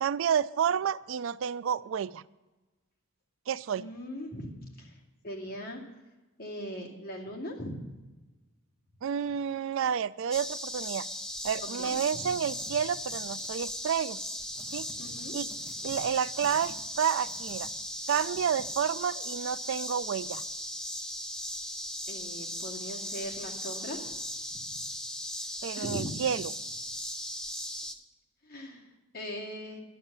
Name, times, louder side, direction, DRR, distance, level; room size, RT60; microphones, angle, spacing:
voice 1, 0.0-2.2 3.5-3.8 9.0-11.0 11.4-14.2 14.7-14.9 15.3-15.5 15.8-17.7 18.1-20.4 25.6-26.4, right 8 dB, 60° right, 17 dB, 0.3 m, -30 dB
voice 2, 3.7-4.5 4.8-5.8 6.4-7.8 11.8-12.3 15.0-15.4 15.8-16.0 22.1-24.0 24.5-24.8 25.8-26.1 28.4-29.8, equal, 45° left, -2 dB, 2.5 m, -40 dB
sound 1, 10.3-27.9, left 1 dB, 5° left, 0.6 m, -38 dB
sound 2, 12.4-12.7 13.1-13.8 14.6-14.9 15.5-16.0 16.4-16.8 17.3-17.7 18.1-18.6, right 1 dB, 20° right, 1.6 m, -53 dB
11.5 x 10.5 x 6.8 m, 1.1 s
head